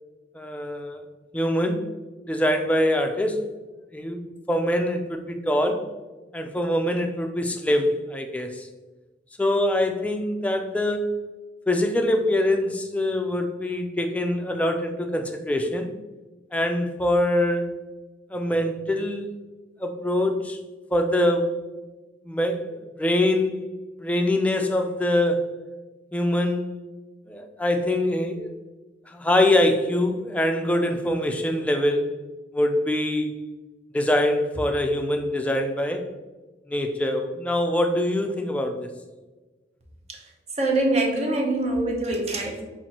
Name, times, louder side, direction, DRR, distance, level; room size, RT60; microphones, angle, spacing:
voice 1, 0.3-1.0 1.3-1.8 2.3-3.4 3.9-5.9 6.3-8.7 9.4-11.1 11.7-15.9 16.5-17.7 18.3-19.4 19.8-20.6 20.9-21.5 22.2-23.6 24.0-25.5 26.1-26.7 27.3-28.5 29.1-32.1 32.5-33.3 33.9-36.1 36.7-38.9, left 1 dB, 10° left, 5 dB, 0.3 m, -24 dB
voice 2, 40.6-42.6, right 2 dB, 35° right, 1 dB, 0.7 m, -24 dB
5.6 x 2.6 x 2.8 m, 1.2 s
head